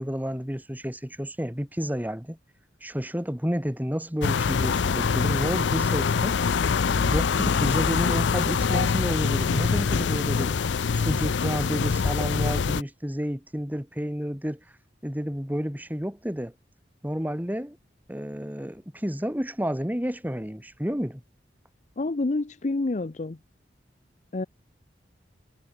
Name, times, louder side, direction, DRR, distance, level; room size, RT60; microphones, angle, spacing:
voice 1, 0.0-2.4 2.8-6.4 6.9-10.6 10.9-14.6 15.0-16.5 17.0-17.8 18.1-21.2, equal, 10° right, 3.1 m, -30 dB
sound 1, 4.2-12.8, left 5 dB, 85° left, 0.5 m, -24 dB
voice 2, 22.0-23.4 24.3-24.5, left 2 dB, 40° left, 0.6 m, -28 dB
head